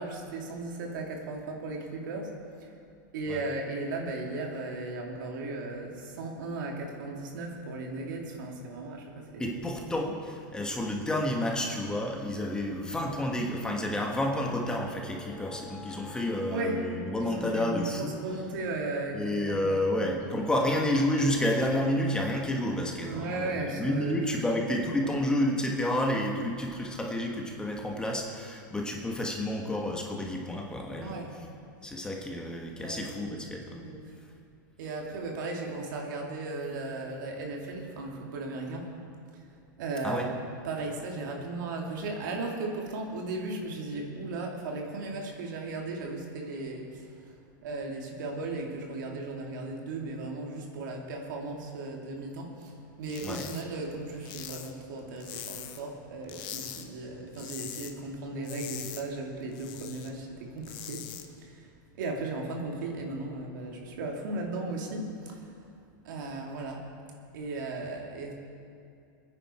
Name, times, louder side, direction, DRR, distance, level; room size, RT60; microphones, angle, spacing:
voice 1, 0.0-2.8 3.1-9.5 16.5-16.8 17.2-20.7 23.0-24.3 25.0-25.4 31.0-31.4 32.8-33.2 33.7-34.2 34.8-38.9 39.3-40.3 40.6-65.7 66.0-66.9 67.3-68.3, right 2 dB, 70° right, 0 dB, 2.6 m, -36 dB
voice 2, 9.4-18.2 19.1-31.2 31.8-33.8 40.0-40.3 53.2-53.5, left 1 dB, 5° left, 0 dB, 1.5 m, -30 dB
sound 1, 14.6-24.8, left 4 dB, 10° right, 3.3 m, -52 dB
sound 2, 53.0-53.6 53.9-55.9 56.2-56.8 57.2-57.9 58.2-60.1 60.5-61.2, left 10 dB, 40° left, 1.2 m, -42 dB
21.5 x 9.8 x 4.4 m, 2.5 s
supercardioid pair, 140°, 11 cm